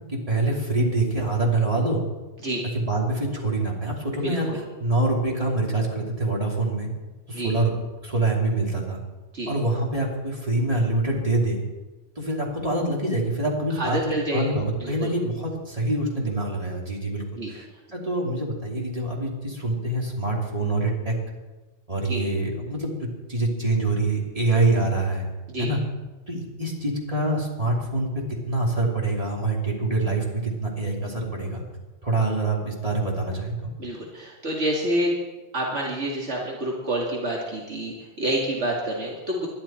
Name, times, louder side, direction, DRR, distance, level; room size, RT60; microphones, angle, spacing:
voice 1, 0.1-2.0 2.7-4.5 4.8-6.9 7.3-7.7 8.0-9.0 9.5-11.6 12.2-14.0 14.3-17.7 17.9-21.1 21.9-22.9 23.3-25.3 25.6-25.8 26.3-28.1 28.5-31.6 32.0-33.7, right 2 dB, 30° right, -2 dB, 3.1 m, -25 dB
voice 2, 4.2-4.6 7.3-7.5 9.3-9.5 13.8-14.5 14.8-15.1 17.4-17.5 22.1-22.2 25.5-25.7 33.8-35.2 35.5-39.5, right 1 dB, 85° right, -3 dB, 2.6 m, -28 dB
21.5 x 12.0 x 4.4 m, 1.2 s
omnidirectional pair, 1.1 m